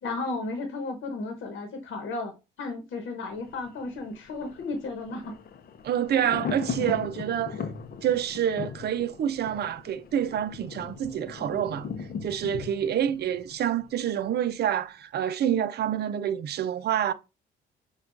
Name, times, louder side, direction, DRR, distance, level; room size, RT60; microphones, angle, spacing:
voice 1, 0.0-2.3 2.6-5.3 6.2-6.3, left 3 dB, 75° left, 1.0 m, -34 dB
Thunder, 3.3-14.3 14.6-14.7, left 6 dB, 50° left, 0.6 m, -38 dB
voice 2, 5.8-7.6 8.0-11.9 12.2-17.1, right 10 dB, 55° right, 0.5 m, -27 dB
6.9 x 2.3 x 2.5 m
cardioid pair, 90°, 20 cm